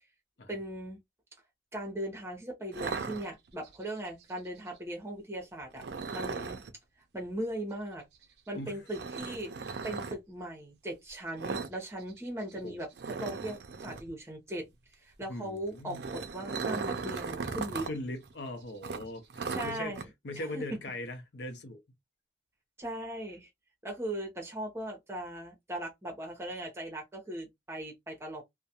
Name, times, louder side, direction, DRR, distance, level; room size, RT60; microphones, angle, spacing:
voice 1, 0.5-1.0 1.7-5.8 6.1-6.6 7.1-8.0 8.5-9.5 9.8-12.9 13.2-14.7 14.9-17.9 19.5-20.1 20.4-20.6 22.8-23.5 23.8-28.4, right 1 dB, 15° right, 0.8 m, -39 dB
sound 1, 2.7-3.8 5.8-6.7 8.9-10.1 11.4-11.8 12.0-12.2 12.5-12.6 13.0-14.1 15.7-17.9 18.2-18.3 18.8-20.0, right 4 dB, 65° right, 0.4 m, -37 dB
voice 2, 15.3-16.1 17.8-21.8, left 1 dB, 70° left, 0.6 m, -40 dB
2.3 x 2.1 x 2.8 m
head